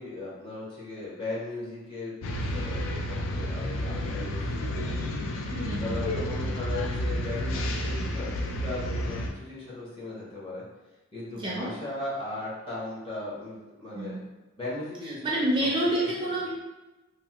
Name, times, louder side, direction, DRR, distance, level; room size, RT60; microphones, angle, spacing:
voice 1, 0.0-2.1 2.5-5.1 5.8-10.6 11.1-14.2 14.6-15.7 16.0-16.4, left 2 dB, 25° left, -7 dB, 0.9 m, -37 dB
sound 1, 2.2-9.3, equal, 60° left, 0.4 m, -31 dB
voice 2, 5.5-6.0 11.3-11.7 13.9-14.2 15.0-16.5, right 1 dB, 25° right, -5 dB, 0.4 m, -28 dB
3.1 x 2.1 x 2.8 m, 1.1 s
head